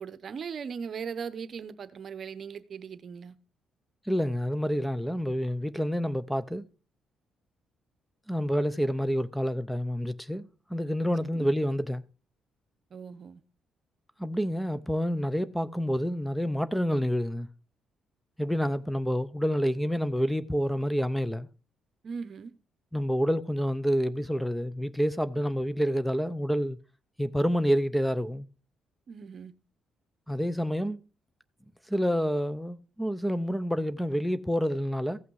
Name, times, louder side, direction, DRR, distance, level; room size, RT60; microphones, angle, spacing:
voice 1, 0.0-3.3 11.3-11.5 12.9-13.4 22.0-22.5 29.1-29.5, right 6 dB, 50° right, 0.8 m, -39 dB
voice 2, 4.1-6.7 8.3-12.0 14.2-17.5 18.4-21.5 22.9-26.8 27.2-28.5 30.3-31.0 31.9-35.2, equal, 5° left, 0.6 m, -28 dB
15.0 x 5.8 x 4.7 m
cardioid pair, 90°, 0 cm